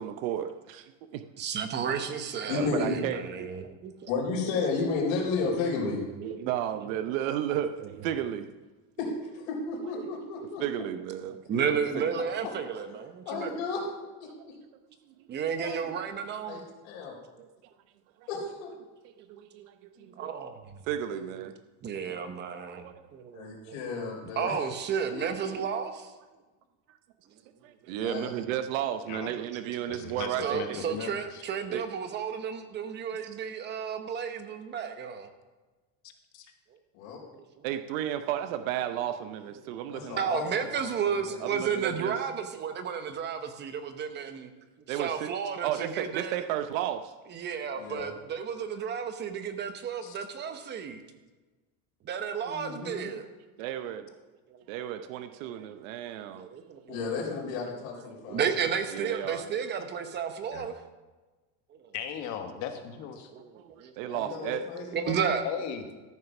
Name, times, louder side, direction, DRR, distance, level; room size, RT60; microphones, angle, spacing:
voice 1, 0.0-1.2 2.5-3.5 6.2-8.5 10.6-12.0 14.4-14.5 16.5-16.6 17.4-17.5 19.3-20.1 20.9-21.5 22.7-22.9 27.6-30.8 31.7-31.8 37.6-40.2 41.4-42.1 44.9-45.3 45.6-47.1 53.6-54.1 54.7-56.5 58.9-59.4 63.6-64.6, right 11 dB, 75° right, 9 dB, 0.8 m, -33 dB
voice 2, 1.4-4.1 6.1-7.0 7.8-7.9 11.3-13.6 15.3-16.6 20.2-20.8 21.8-23.9 24.4-26.1 27.8-27.9 30.4-35.3 36.7-36.8 37.3-37.6 39.7-39.8 40.1-44.5 44.9-46.4 47.3-51.0 52.0-53.3 54.5-55.7 56.3-57.3 57.6-57.8 58.3-60.8 61.7-61.9 63.3-64.2 64.6-65.4, right 7 dB, 25° right, 8 dB, 0.9 m, -33 dB
voice 3, 2.5-3.0 4.1-6.0 9.0-9.1 9.3-10.6 12.4-12.5 13.3-13.8 14.2-14.3 15.6-15.9 16.5-17.1 18.3-18.7 21.1-21.3 23.3-24.5 25.1-25.5 28.0-28.4 36.9-37.2 39.9-40.5 40.7-40.9 47.8-48.1 52.5-53.1 56.9-58.4 64.1-65.3, left 4 dB, 80° left, -2 dB, 3.8 m, -33 dB
voice 4, 29.9-31.1 31.3-31.4 36.3-36.5 50.0-50.2 60.5-60.6 61.9-63.3 65.4-65.8, left 8 dB, 45° left, 6 dB, 1.4 m, -37 dB
13.5 x 6.5 x 6.0 m, 1.2 s
cardioid pair, 165°, 40 cm